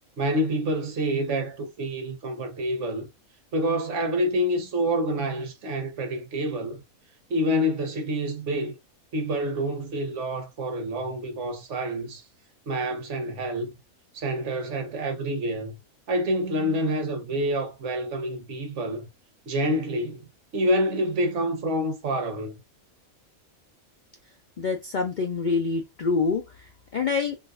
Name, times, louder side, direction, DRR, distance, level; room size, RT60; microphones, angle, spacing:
voice 1, 0.2-3.1 3.5-6.8 7.3-8.7 9.1-12.2 12.7-13.7 14.1-15.8 16.1-19.1 19.5-20.3 20.5-22.6, equal, 60° right, 1.1 m, -27 dB
voice 2, 24.6-27.3, left 4 dB, 90° left, 0.4 m, -26 dB
3.8 x 2.6 x 2.5 m
omnidirectional pair, 1.5 m